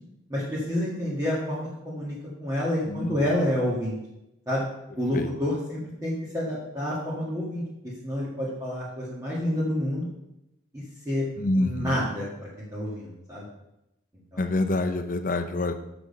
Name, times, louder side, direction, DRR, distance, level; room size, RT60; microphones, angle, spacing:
voice 1, 0.3-3.9 4.5-4.6 5.0-10.1 10.7-11.3 11.5-13.5 14.3-14.4, left 1 dB, 15° right, -7 dB, 1.6 m, -29 dB
voice 2, 2.9-3.2 5.1-5.3 11.4-12.0 14.4-15.7, left 2 dB, 45° left, 8 dB, 0.7 m, -26 dB
6.9 x 6.3 x 5.3 m, 0.88 s
head